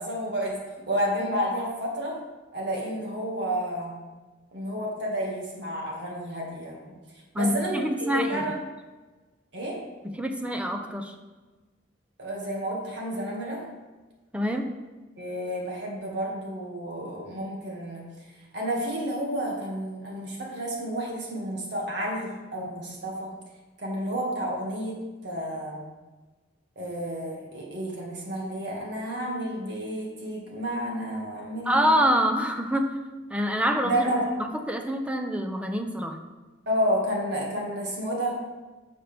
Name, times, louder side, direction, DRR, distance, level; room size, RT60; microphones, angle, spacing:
voice 1, 0.0-2.2 2.5-3.9 4.5-6.9 7.3-8.5 9.5-9.8 12.2-13.6 15.2-18.1 18.5-23.3 23.8-25.0 25.2-25.8 26.8-31.9 33.8-34.3 36.7-38.3, equal, 65° right, -2 dB, 2.2 m, -30 dB
voice 2, 7.3-8.4 10.2-11.1 14.3-14.7 31.7-32.9 33.3-34.0 34.4-36.2, equal, 5° right, 5 dB, 0.7 m, -26 dB
12.0 x 6.7 x 3.5 m, 1.3 s
head